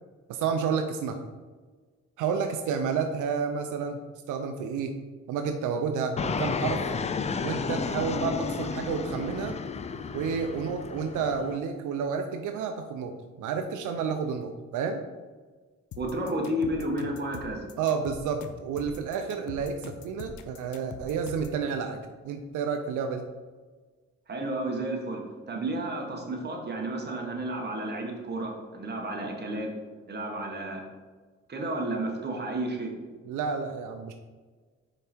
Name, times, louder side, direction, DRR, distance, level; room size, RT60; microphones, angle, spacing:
voice 1, 0.3-1.2 2.2-4.0 4.3-5.0 5.3-6.8 7.4-9.6 10.1-13.1 13.4-15.0 17.8-22.0 22.2-23.3 33.3-34.1, right 6 dB, 80° right, 6 dB, 0.6 m, -30 dB
Fixed-wing aircraft airplane, 6.2-11.6, left 5 dB, 25° left, 0.3 m, -32 dB
sound 1, 15.9-21.6, left 5 dB, 70° left, 0.6 m, -43 dB
voice 2, 16.0-17.7 24.3-29.7 30.1-30.8 31.5-32.9, right 1 dB, 35° right, 0 dB, 1.5 m, -32 dB
5.2 x 4.8 x 4.4 m, 1.4 s
cardioid pair, 90°, 30 cm